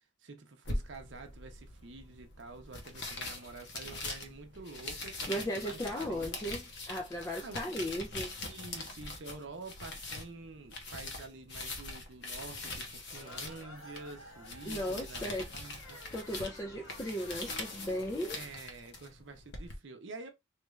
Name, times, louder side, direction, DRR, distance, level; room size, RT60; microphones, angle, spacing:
voice 1, 0.0-6.4 7.4-7.6 8.5-16.0 18.3-20.3, right 3 dB, 60° right, 0.7 m, -48 dB
sound 1, 0.6-19.7, left 2 dB, 55° left, 0.7 m, -43 dB
voice 2, 5.3-8.5 14.6-15.5 16.1-18.4, equal, 15° left, 0.3 m, -36 dB
sound 2, 13.1-18.4, equal, 80° left, 1.5 m, -52 dB
3.2 x 2.4 x 3.1 m
head